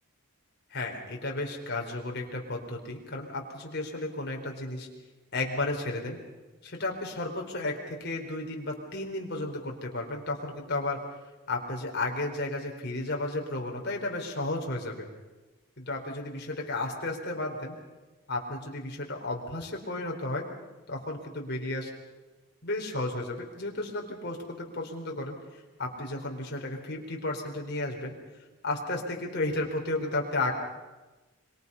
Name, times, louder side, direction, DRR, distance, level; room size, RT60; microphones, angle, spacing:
voice 1, 0.7-4.9 5.3-6.2 6.6-11.0 11.5-15.1 15.8-17.7 18.3-20.5 20.9-21.9 22.6-25.4 25.8-28.1 28.6-30.5, left 2 dB, 50° left, 1 dB, 4.2 m, -33 dB
26.0 x 24.0 x 5.6 m, 1.1 s
head